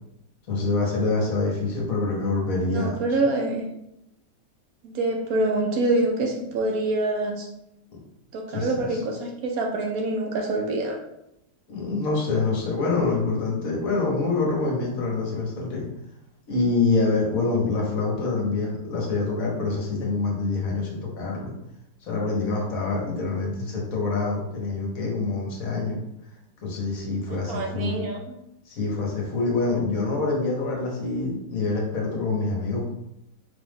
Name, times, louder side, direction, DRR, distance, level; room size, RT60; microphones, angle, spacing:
voice 1, 0.5-3.0 8.5-9.0 11.7-15.9 16.5-21.5 22.1-26.0 26.6-28.0 28.7-32.9, left 3 dB, 55° left, -2 dB, 1.4 m, -26 dB
voice 2, 2.7-3.7 4.8-7.5 8.3-11.0 27.3-28.3, right 2 dB, 70° right, 2 dB, 0.9 m, -26 dB
4.3 x 2.5 x 3.5 m, 0.82 s
omnidirectional pair, 1.8 m